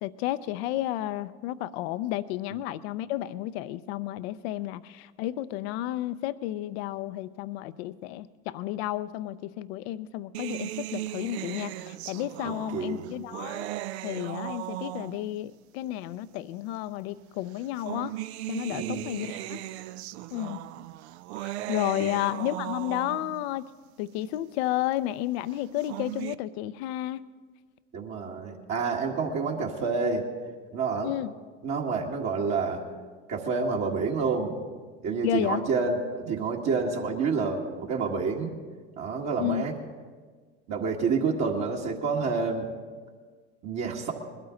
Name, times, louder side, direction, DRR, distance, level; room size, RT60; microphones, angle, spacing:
voice 1, 0.0-13.7 14.0-18.1 18.5-19.6 20.3-20.7 21.4-23.7 24.0-27.2 31.0-31.3 35.2-35.6 39.4-39.6, left 14 dB, 70° left, 16 dB, 0.6 m, -32 dB
sound 1, 10.3-15.4 16.4-16.5 17.5-23.4 25.6-26.3, right 15 dB, 75° right, 0.5 m, -37 dB
voice 2, 12.4-13.1 18.7-19.1 22.0-22.1 27.9-30.2 30.7-31.1 31.6-32.8 33.3-34.7 35.0-38.5 39.0-39.7 40.7-42.7 43.6-44.1, right 4 dB, 55° right, -2 dB, 2.0 m, -28 dB
21.0 x 12.5 x 3.9 m, 1.5 s
hypercardioid pair, 70°, 33 cm